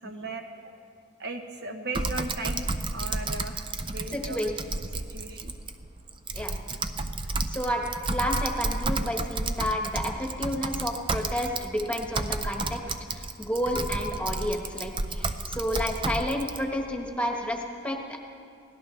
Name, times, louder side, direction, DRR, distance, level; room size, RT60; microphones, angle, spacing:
voice 1, 0.0-0.6 1.2-4.6 4.9-5.5 6.4-6.5, right 2 dB, 50° right, 4 dB, 1.0 m, -37 dB
Typing, 1.9-16.6, right 3 dB, 25° right, 0.5 m, -32 dB
voice 2, 4.1-4.5 6.3-6.6 7.5-7.8 8.1-18.2, equal, 5° left, 1 dB, 1.3 m, -30 dB
24.0 x 17.5 x 3.3 m, 2.5 s
head